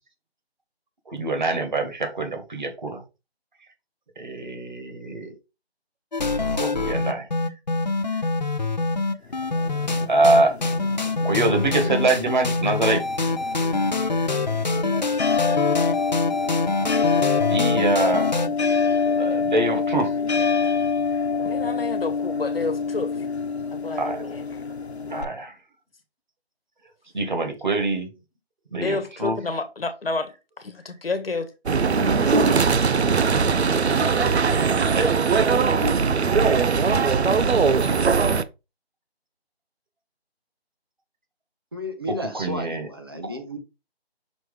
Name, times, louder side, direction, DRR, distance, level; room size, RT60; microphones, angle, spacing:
voice 1, 1.1-3.0 4.2-5.4 6.3-7.3 10.1-10.5 11.2-13.0 17.5-18.3 19.2-20.1 23.9-24.3 25.1-25.6 27.1-28.1 28.7-29.4 34.9-35.1 42.3-42.9, right 2 dB, 45° right, 1.9 m, -24 dB
sound 1, 6.1-18.5, left 3 dB, 45° left, 0.6 m, -25 dB
sound 2, 9.3-25.2, left 5 dB, 80° left, 1.0 m, -26 dB
voice 2, 21.4-23.2 23.7-24.6 28.8-30.3 30.6-31.5, left 3 dB, 65° left, 1.3 m, -29 dB
sound 3, 31.7-38.4, right 5 dB, 85° right, 0.7 m, -20 dB
voice 3, 41.7-43.6, left 1 dB, 25° right, 0.8 m, -33 dB
6.2 x 3.2 x 4.9 m
figure-of-eight pair, 165°, 32 cm